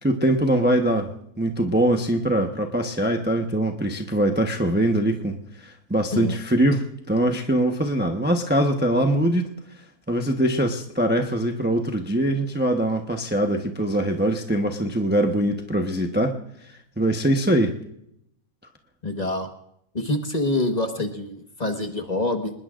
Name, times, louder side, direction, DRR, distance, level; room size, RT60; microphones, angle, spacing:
voice 1, 0.0-9.5 10.1-16.4 17.0-17.8, right 1 dB, 10° right, 3 dB, 0.8 m, -22 dB
voice 2, 19.0-19.5 19.9-22.5, left 2 dB, 30° left, 5 dB, 1.4 m, -26 dB
26.5 x 20.5 x 2.5 m, 0.75 s
omnidirectional pair, 1.5 m